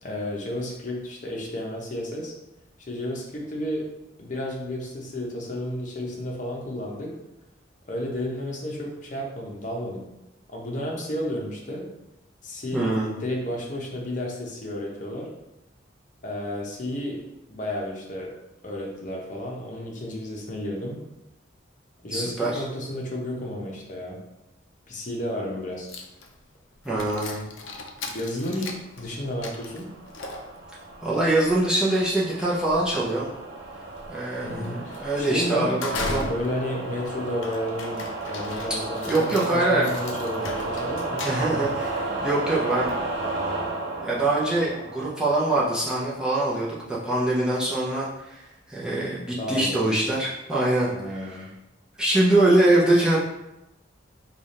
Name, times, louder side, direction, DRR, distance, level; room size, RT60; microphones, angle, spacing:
voice 1, 0.0-2.3 2.8-3.8 4.2-7.1 7.9-10.1 10.5-11.9 12.4-15.3 16.2-17.2 17.5-18.3 18.6-21.0 22.0-24.2 24.9-25.9 28.1-29.9 34.4-41.2 49.4-49.9 50.9-51.5, left 1 dB, 40° left, -2 dB, 0.8 m, -32 dB
voice 2, 12.7-13.2 22.1-22.6 26.8-27.4 31.0-33.3 34.1-36.2 39.1-39.9 41.2-43.0 44.0-48.4 48.7-51.4 52.0-53.2, right 2 dB, 5° right, -7 dB, 0.6 m, -23 dB
sound 1, 25.9-43.5, left 2 dB, 85° left, 0.5 m, -39 dB
sound 2, 29.4-45.8, right 2 dB, 65° right, 0.7 m, -33 dB
3.4 x 2.4 x 4.1 m, 0.92 s
head